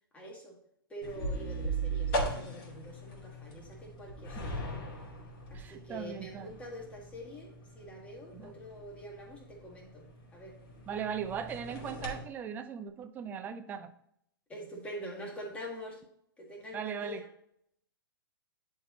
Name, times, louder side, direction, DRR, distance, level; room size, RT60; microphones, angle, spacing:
voice 1, 0.1-0.6 0.9-4.8 5.5-10.6 14.5-16.0 16.4-17.3, equal, 10° left, -1 dB, 1.9 m, -45 dB
sound 1, 1.0-12.2, right 2 dB, 35° left, 2.3 m, -39 dB
voice 2, 5.5-6.5 8.3-8.5 10.9-13.9 16.7-17.2, right 7 dB, 15° right, 8 dB, 0.5 m, -38 dB
11.0 x 4.5 x 2.9 m, 0.71 s
figure-of-eight pair, 115°, 12 cm